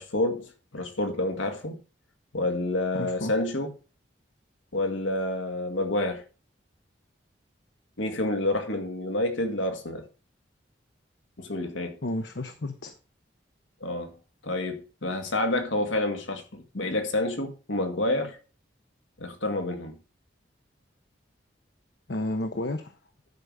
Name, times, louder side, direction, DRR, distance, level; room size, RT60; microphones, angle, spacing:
voice 1, 0.0-1.8 2.3-3.7 4.7-6.2 8.0-10.0 11.4-12.0 13.8-14.1 14.4-18.4 19.2-19.9, left 1 dB, 90° left, 1.9 m, -28 dB
voice 2, 2.9-3.3 12.0-12.9 22.1-22.9, left 1 dB, 65° left, 0.8 m, -31 dB
11.5 x 4.8 x 5.4 m
head